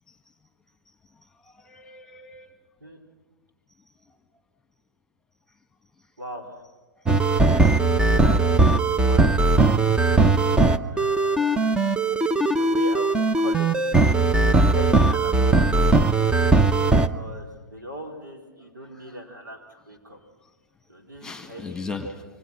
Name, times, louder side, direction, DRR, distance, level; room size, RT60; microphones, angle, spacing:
voice 1, 1.4-2.6 12.3-12.7 14.5-14.6 18.9-19.2 21.2-22.2, left 4 dB, 5° left, 8 dB, 1.9 m, -38 dB
voice 2, 6.2-6.6 8.2-9.3 10.9-11.9 12.4-13.7 14.6-15.9 17.0-20.2 20.9-21.8, equal, 85° right, 2 dB, 4.5 m, -39 dB
sound 1, 7.1-17.1, right 3 dB, 10° right, 0.7 m, -19 dB
27.0 x 24.0 x 6.0 m, 1.3 s
figure-of-eight pair, 115°, 10 cm